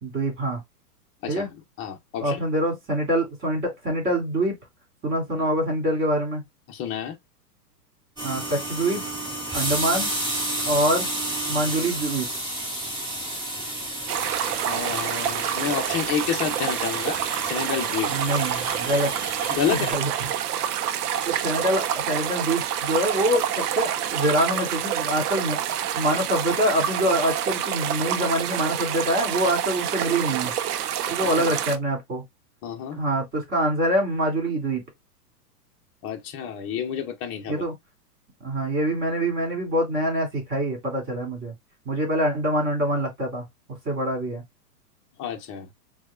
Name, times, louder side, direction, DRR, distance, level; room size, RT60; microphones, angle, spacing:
voice 1, 0.0-0.6 1.3-1.5 2.2-4.5 5.0-6.4 8.2-9.0 9.5-10.1 10.6-11.1 11.5-12.3 18.1-19.1 19.7-20.1 21.2-25.6 26.0-30.5 31.1-32.2 33.0-34.8 37.5-37.7 38.4-41.5 41.9-43.5 43.9-44.4, right 1 dB, 25° right, 2.5 m, -25 dB
voice 2, 1.8-2.4 6.7-7.2 14.6-18.1 19.5-20.0 31.2-31.5 32.6-33.0 36.0-37.6 45.2-45.7, left 8 dB, 25° left, 0.8 m, -29 dB
sound 1, 8.2-19.9, right 1 dB, 10° right, 1.9 m, -31 dB
sound 2, 14.1-31.8, right 10 dB, 70° right, 0.7 m, -27 dB
6.0 x 2.4 x 2.4 m
hypercardioid pair, 125°, 48 cm